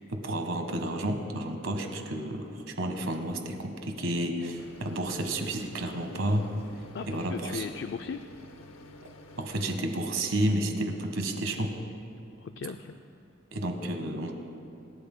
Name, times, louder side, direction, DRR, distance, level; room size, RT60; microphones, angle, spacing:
voice 1, 0.1-6.4 7.1-7.7 9.4-11.7 13.5-14.3, right 1 dB, 85° right, 4 dB, 1.5 m, -31 dB
sound 1, 4.6-9.8, left 2 dB, 90° left, 0.9 m, -50 dB
voice 2, 6.9-8.2 12.4-13.0 14.3-14.4, left 5 dB, 65° left, 9 dB, 0.4 m, -37 dB
27.0 x 12.5 x 2.2 m, 2.5 s
head